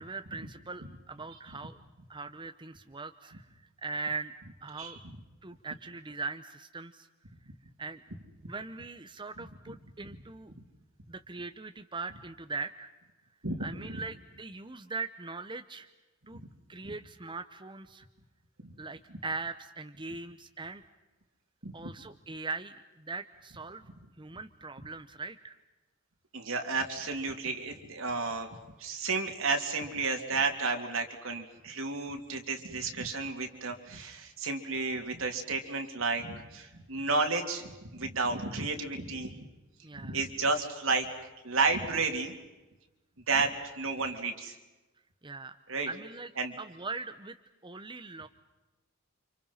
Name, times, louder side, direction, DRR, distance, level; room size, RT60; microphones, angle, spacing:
voice 1, 0.0-1.8 2.1-3.5 3.8-4.3 4.6-5.0 5.4-7.1 7.8-8.0 8.4-10.5 11.1-12.9 13.6-15.9 16.3-16.4 16.7-18.0 18.8-20.8 21.7-23.9 24.2-25.6 39.8-40.2 45.2-45.6 45.9-46.3 46.6-47.4 47.6-48.3, right 4 dB, 25° right, 8 dB, 0.9 m, -40 dB
voice 2, 13.4-14.0 16.8-16.9 18.6-18.7 21.6-21.7 26.3-28.5 28.8-39.4 40.0-42.3 43.3-43.5 43.8-44.6 45.7-45.9 46.4-46.5, right 3 dB, 75° right, 3 dB, 3.4 m, -32 dB
30.0 x 27.5 x 5.7 m, 1.1 s
head